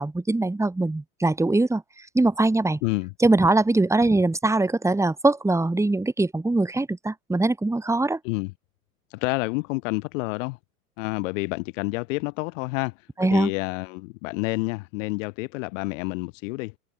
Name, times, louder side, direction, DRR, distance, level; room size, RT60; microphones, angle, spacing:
voice 1, 0.0-1.8 2.1-2.8 3.2-8.2 13.2-13.5, right 2 dB, 5° right, 3.7 m, -22 dB
voice 2, 2.8-3.1 8.2-8.5 9.1-10.6 11.0-12.9 13.2-16.7, left 26 dB, 55° left, 6.1 m, -29 dB
hypercardioid pair, 100°, 44 cm